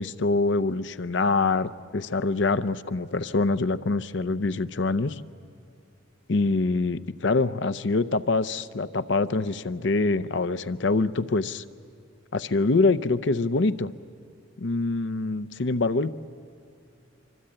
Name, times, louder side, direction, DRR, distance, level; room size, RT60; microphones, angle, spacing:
voice 1, 0.0-5.2 6.3-11.6 12.3-13.9 14.6-16.3, left 3 dB, 65° left, 14 dB, 0.7 m, -25 dB
25.0 x 25.0 x 8.8 m, 2.4 s
head